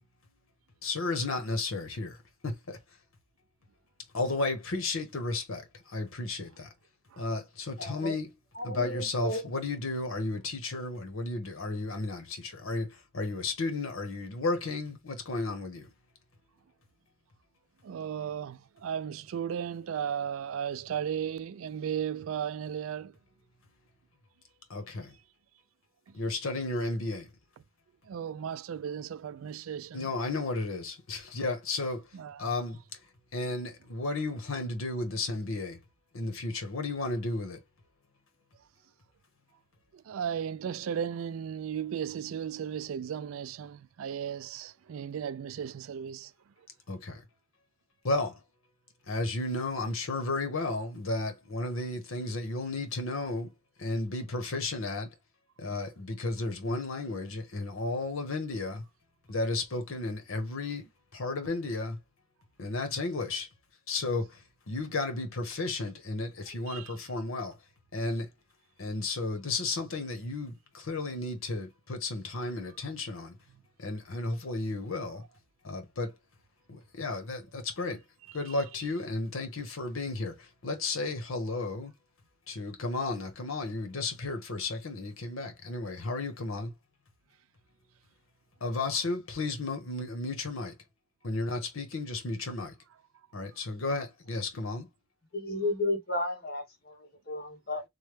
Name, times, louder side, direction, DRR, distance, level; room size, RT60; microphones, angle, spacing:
voice 1, 0.8-2.8 4.1-6.7 7.2-8.4 8.6-15.9 24.7-25.2 26.1-27.3 29.9-32.1 32.4-33.0 33.3-35.8 36.1-37.6 46.9-47.2 48.0-48.4 49.1-53.5 53.8-55.1 55.6-58.8 59.3-62.0 62.6-63.5 63.9-67.6 67.9-68.3 68.8-73.4 73.8-75.2 75.6-76.2 76.7-78.0 78.3-81.9 82.5-86.7 88.6-90.7 91.2-92.7 93.3-94.9, left 2 dB, 85° left, 0.9 m, -33 dB
voice 2, 7.8-8.1 8.6-9.4 95.3-97.8, left 2 dB, 50° left, 1.0 m, -33 dB
voice 3, 17.8-23.2 26.1-26.2 28.0-30.1 32.1-32.4 39.9-46.3 66.7-66.9, right 8 dB, 80° right, 0.3 m, -35 dB
3.2 x 2.2 x 3.2 m
head